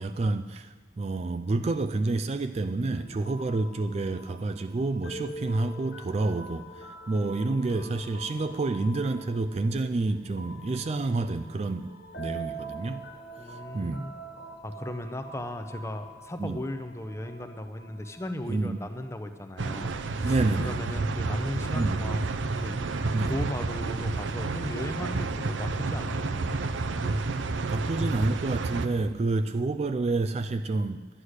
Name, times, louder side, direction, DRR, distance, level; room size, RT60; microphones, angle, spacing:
voice 1, 0.0-13.1 13.5-14.1 16.4-16.6 18.5-18.8 20.2-20.8 21.7-22.0 23.1-23.3 27.7-31.1, right 3 dB, 35° right, 10 dB, 0.3 m, -29 dB
sound 1, 2.8-20.2, right 2 dB, 55° left, 1.5 m, -45 dB
voice 2, 13.4-14.1 14.6-22.8 23.2-26.6, left 1 dB, 15° left, 8 dB, 0.6 m, -36 dB
sound 2, 19.6-28.9, right 3 dB, 85° right, 0.6 m, -30 dB
11.0 x 9.8 x 6.5 m, 1.4 s
head